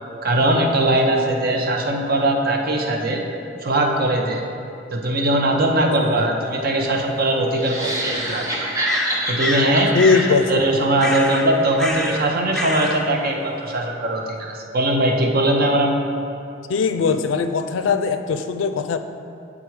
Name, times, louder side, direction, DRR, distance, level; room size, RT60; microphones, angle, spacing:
voice 1, 0.2-3.2 3.6-4.4 4.9-8.7 9.3-9.9 10.5-16.0, right 1 dB, 50° right, 2 dB, 0.7 m, -20 dB
sound 1, 6.8-6.9 8.8-9.7 10.0-10.3 11.0-11.4 11.8-12.2 12.5-13.0, left 1 dB, 5° left, 0.4 m, -26 dB
sound 2, 7.5-11.8, right 1 dB, 20° right, 0.9 m, -27 dB
voice 2, 9.9-10.6 16.7-19.0, left 5 dB, 85° left, 9 dB, 0.4 m, -20 dB
8.2 x 3.7 x 4.6 m, 2.5 s
head